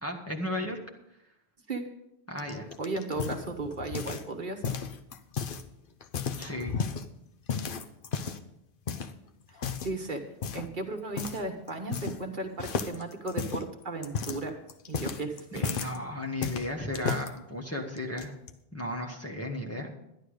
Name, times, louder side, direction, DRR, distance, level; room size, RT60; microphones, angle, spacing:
voice 1, 0.0-0.8 2.3-2.7 6.4-6.7 15.6-18.3 18.7-19.9, left 1 dB, 15° left, 0 dB, 1.5 m, -34 dB
sound 1, 2.4-4.3 4.6-5.6 6.0-7.1 7.5-8.5 8.9-9.1 9.6-9.9 10.4-10.7 11.2-11.4 11.7-12.3 12.6-16.0 16.4-17.3 18.0-18.5, left 6 dB, 60° left, 0.9 m, -34 dB
voice 2, 2.8-4.6 9.8-10.2 10.5-14.6 14.9-15.7 19.8-19.9, right 2 dB, 55° right, 4 dB, 1.3 m, -35 dB
11.5 x 11.0 x 4.9 m, 0.83 s
omnidirectional pair, 1.1 m